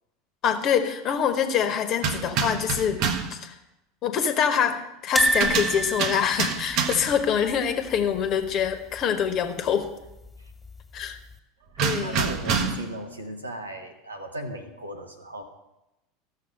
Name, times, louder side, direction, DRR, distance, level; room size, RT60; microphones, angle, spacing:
voice 1, 0.4-3.0 3.3-3.5 4.0-9.9 10.9-11.2 11.8-12.2, left 8 dB, 45° left, 8 dB, 1.2 m, -25 dB
sound 1, 2.0-3.4 5.2-7.2 11.8-13.0, right 6 dB, 50° right, 1.0 m, -27 dB
sound 2, 5.1-8.2 8.5-8.7 8.9-9.0 10.3-10.8 11.3-11.4, right 2 dB, 5° left, 1.9 m, -28 dB
voice 2, 12.0-15.4, right 1 dB, 90° right, 4 dB, 1.2 m, -36 dB
14.0 x 6.5 x 6.4 m, 0.94 s
figure-of-eight pair, 80°, 0 cm